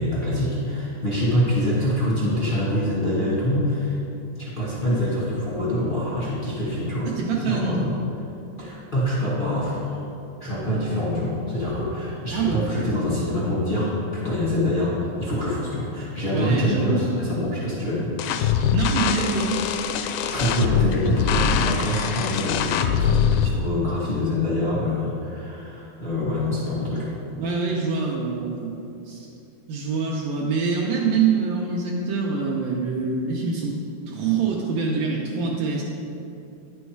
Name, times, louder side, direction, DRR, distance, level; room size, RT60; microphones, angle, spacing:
voice 1, 0.0-4.0 4.4-7.1 7.4-7.9 8.6-10.0 10.4-18.1 20.3-27.1, left 1 dB, 45° left, -9 dB, 0.6 m, -25 dB
voice 2, 7.1-7.8 12.3-12.7 16.3-17.2 18.7-19.6 27.4-29.3 29.7-33.8 34.1-35.8, right 5 dB, 75° right, -2 dB, 2.1 m, -25 dB
sound 1, 18.2-23.5, left 8 dB, 80° left, 2.1 m, -23 dB
10.5 x 6.3 x 4.6 m, 2.7 s
omnidirectional pair, 4.5 m